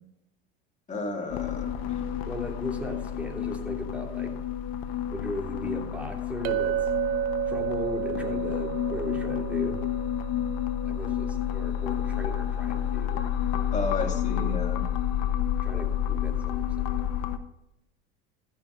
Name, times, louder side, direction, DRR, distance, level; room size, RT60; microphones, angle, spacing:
voice 1, 0.9-2.0 13.7-14.8, left 2 dB, 25° left, 1 dB, 2.8 m, -32 dB
sound 1, 1.3-17.4, left 10 dB, 65° left, 1.2 m, -30 dB
voice 2, 2.3-4.3 5.1-6.9 7.4-9.8 10.8-13.2 15.6-17.1, equal, 5° right, 1 dB, 3.2 m, -37 dB
Chink clink, 6.4-10.9, right 10 dB, 60° right, 0.9 m, -31 dB
14.5 x 6.4 x 5.2 m, 0.83 s
hypercardioid pair, 90°, 29 cm